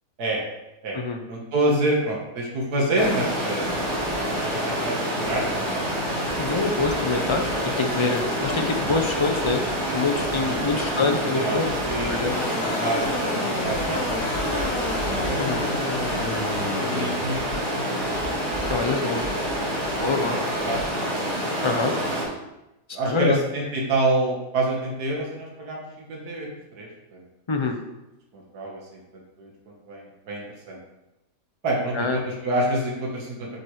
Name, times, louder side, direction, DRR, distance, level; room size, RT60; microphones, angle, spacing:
voice 1, 1.3-5.9 6.4-6.6 10.3-12.3 12.6-14.2 14.5-14.7 15.2-15.4 16.8-18.7 19.9-20.2 20.6-20.9 22.0-22.1 22.9-27.2 28.3-30.8 31.6-33.5, right 1 dB, 80° right, -2 dB, 2.0 m, -28 dB
Stream, 3.0-22.2, equal, 35° right, 2.1 m, -27 dB
voice 2, 6.4-7.4 7.8-9.6 9.9-11.7 12.1-12.3 15.4-15.6 18.7-19.3 20.0-20.4 21.6-21.9 23.0-23.4 27.5-27.8 31.9-32.2, left 3 dB, 35° left, 3 dB, 0.4 m, -25 dB
sound 1, 12.3-17.1, left 3 dB, 65° left, 1.3 m, -31 dB
7.5 x 4.6 x 4.8 m, 0.97 s
omnidirectional pair, 1.6 m